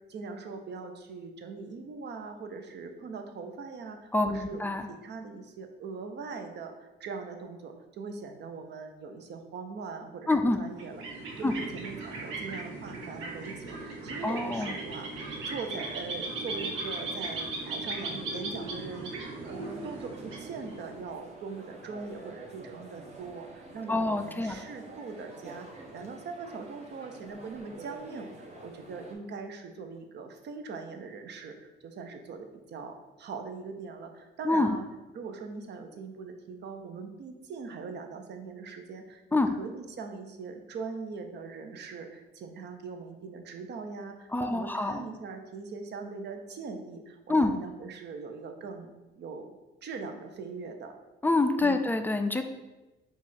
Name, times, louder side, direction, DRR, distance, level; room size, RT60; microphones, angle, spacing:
voice 1, 0.1-25.7 25.9-34.8 35.1-50.9 51.6-51.9, right 4 dB, 60° right, 5 dB, 0.6 m, -41 dB
voice 2, 4.1-4.9 10.3-10.6 11.4-11.5 14.2-14.8 23.9-24.6 34.4-34.8 39.3-39.6 44.3-45.0 47.3-47.5 51.2-52.4, left 2 dB, 10° left, 7 dB, 0.3 m, -26 dB
sound 1, 10.7-21.1, right 2 dB, 85° right, 0.8 m, -37 dB
sound 2, 19.4-29.1, right 2 dB, 35° right, 0.8 m, -48 dB
4.6 x 2.4 x 4.2 m, 1.1 s
cardioid pair, 90°, 20 cm